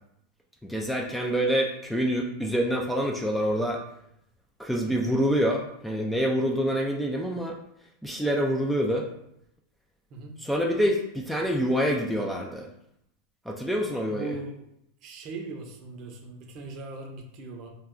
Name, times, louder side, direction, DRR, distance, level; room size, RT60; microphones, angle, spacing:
voice 1, 0.6-3.8 4.6-7.6 8.0-9.1 10.4-12.7 13.5-14.3, equal, ahead, 0 dB, 0.4 m, -26 dB
voice 2, 14.1-14.7 15.0-17.7, right 3 dB, 45° right, 2 dB, 0.6 m, -39 dB
2.3 x 2.2 x 3.6 m, 0.77 s
hypercardioid pair, 115°, 0 cm